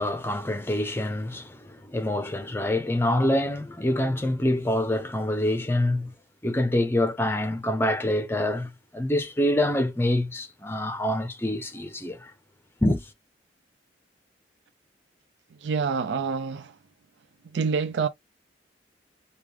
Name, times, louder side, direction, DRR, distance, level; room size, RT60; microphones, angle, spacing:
voice 1, 0.0-6.1 6.4-12.3 12.8-13.1, left 1 dB, 15° left, 0.8 m, -26 dB
voice 2, 15.6-16.8 17.5-18.1, right 5 dB, 75° right, 0.4 m, -27 dB
4.7 x 2.4 x 3.3 m
head